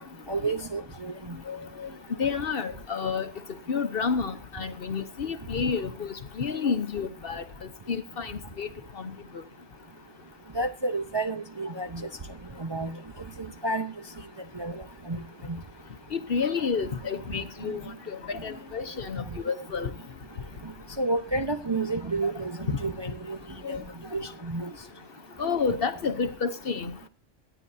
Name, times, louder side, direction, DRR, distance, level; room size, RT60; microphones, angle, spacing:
voice 1, 0.3-1.3 10.5-12.1 12.6-13.0 13.6-13.9 14.5-15.2 15.5-15.6 21.0-23.4 23.7-23.8 24.1-24.7, right 2 dB, 25° right, 0.6 m, -30 dB
voice 2, 1.5-1.9 2.2-3.3 3.7-7.4 7.9-8.7 8.9-9.4 16.1-19.9 23.6-23.8 25.4-27.1, left 5 dB, 50° left, 1.0 m, -30 dB
23.0 x 10.0 x 2.7 m
omnidirectional pair, 1.3 m